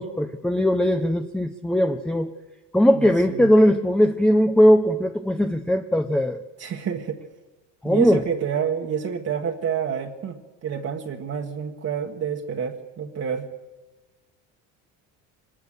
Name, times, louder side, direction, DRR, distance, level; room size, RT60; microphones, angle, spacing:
voice 1, 0.0-2.3 2.7-6.4 7.8-8.2, equal, 5° left, 7 dB, 0.8 m, -19 dB
voice 2, 2.9-3.5 6.6-7.2 7.8-13.5, right 7 dB, 45° right, 0 dB, 1.6 m, -28 dB
23.0 x 19.5 x 6.7 m, 1.2 s
supercardioid pair, 100°, 36 cm